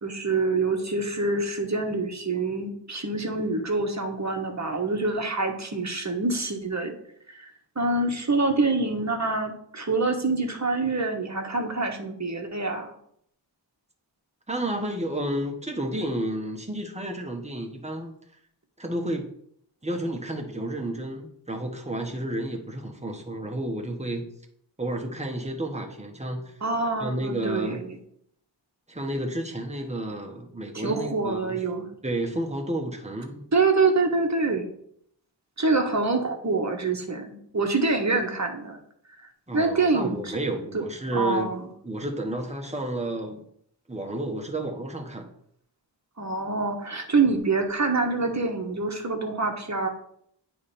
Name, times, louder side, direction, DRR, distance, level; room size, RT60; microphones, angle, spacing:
voice 1, 0.0-6.9 7.3-12.9 26.6-28.0 30.7-31.9 33.5-34.6 35.6-38.8 39.5-40.3 40.7-40.8 41.1-41.6 46.2-49.9, right 3 dB, 40° right, 3 dB, 1.4 m, -26 dB
voice 2, 14.5-18.1 18.8-19.3 19.8-24.3 24.8-26.5 27.0-27.8 28.9-31.6 32.0-33.5 39.5-41.5 41.8-43.4 43.9-45.3, right 1 dB, 15° right, 2 dB, 1.3 m, -31 dB
9.4 x 3.4 x 4.3 m, 0.69 s
wide cardioid pair, 50°, 44 cm